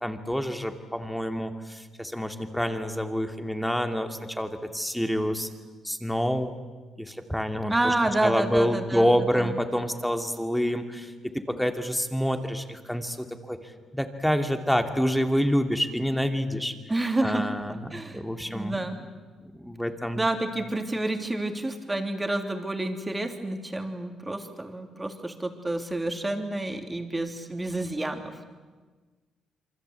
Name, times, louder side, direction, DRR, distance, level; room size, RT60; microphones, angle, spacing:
voice 1, 0.0-5.5 5.8-6.6 7.0-7.9 8.2-13.6 13.9-16.7 17.2-18.8 19.4-20.3, equal, 5° left, 6 dB, 2.6 m, -27 dB
voice 2, 7.7-9.6 16.9-17.5 17.9-18.2 18.5-19.0 20.1-28.5, right 2 dB, 15° right, 4 dB, 3.3 m, -29 dB
27.5 x 24.0 x 8.4 m, 1.4 s
cardioid pair, 90°, 0 cm